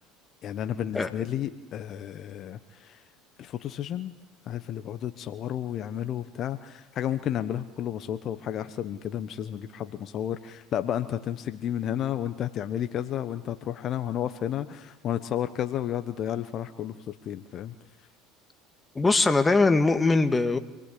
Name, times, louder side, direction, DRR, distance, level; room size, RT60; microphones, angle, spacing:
voice 1, 0.4-3.0 3.4-4.1 4.5-17.7, left 10 dB, 50° left, 10 dB, 1.1 m, -32 dB
voice 2, 19.0-20.6, left 3 dB, 20° left, 8 dB, 1.8 m, -21 dB
26.5 x 19.0 x 8.6 m, 1.1 s
hypercardioid pair, 80°, 0 cm